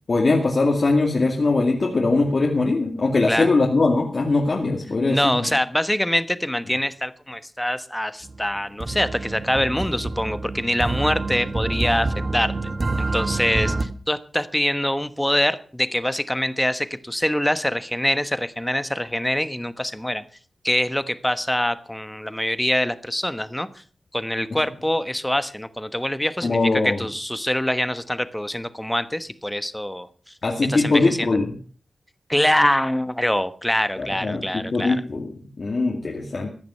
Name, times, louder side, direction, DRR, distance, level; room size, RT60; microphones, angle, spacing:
voice 1, 0.1-5.5 26.4-27.0 30.4-31.6 34.0-36.5, left 3 dB, 55° left, 0 dB, 2.3 m, -21 dB
voice 2, 5.1-12.5 13.0-20.2 20.6-23.7 24.1-30.1 30.7-31.4 32.3-35.0, left 1 dB, 10° left, 12 dB, 1.2 m, -24 dB
sound 1, 8.2-13.8, right 2 dB, 45° right, 1.4 m, -27 dB
15.5 x 10.5 x 5.7 m, 0.42 s
wide cardioid pair, 75°, 0 cm